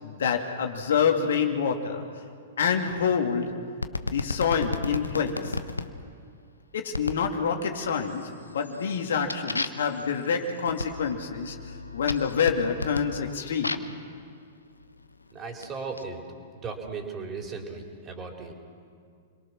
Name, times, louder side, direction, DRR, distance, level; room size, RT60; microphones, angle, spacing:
voice 1, 0.0-2.0 2.6-3.5 4.0-5.6 6.7-11.6 11.9-13.8, left 6 dB, 65° left, 4 dB, 2.3 m, -27 dB
sound 1, 3.8-5.9 6.9-7.3 7.7-8.2 8.6-14.0 14.8-16.0, left 3 dB, 85° left, 1.1 m, -34 dB
voice 2, 15.3-16.2 16.6-18.5, right 4 dB, 25° right, 1 dB, 4.2 m, -36 dB
29.0 x 23.0 x 6.3 m, 2.2 s
figure-of-eight pair, 105°, 0 cm